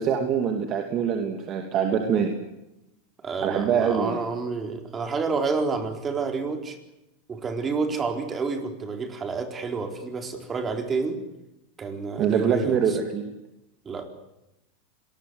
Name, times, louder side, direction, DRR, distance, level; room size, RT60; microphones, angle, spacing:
voice 1, 0.0-2.3 3.4-4.2 12.2-13.3, right 7 dB, 40° right, 4 dB, 2.9 m, -24 dB
voice 2, 3.2-6.8 7.3-11.2 11.8-12.8 13.8-14.1, right 4 dB, 20° right, 5 dB, 4.2 m, -29 dB
26.0 x 20.5 x 8.2 m, 0.92 s
supercardioid pair, 125°, 0 cm